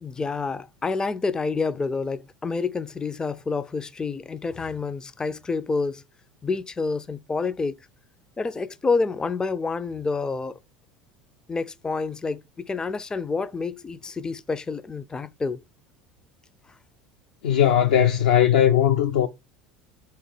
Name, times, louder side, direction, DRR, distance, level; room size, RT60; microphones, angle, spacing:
voice 1, 0.0-6.0 6.4-7.7 8.4-10.6 11.5-15.6, left 4 dB, 15° left, 0.4 m, -28 dB
voice 2, 17.4-19.3, left 10 dB, 75° left, 0.5 m, -18 dB
3.7 x 2.9 x 4.6 m
hypercardioid pair, 75°, 4 cm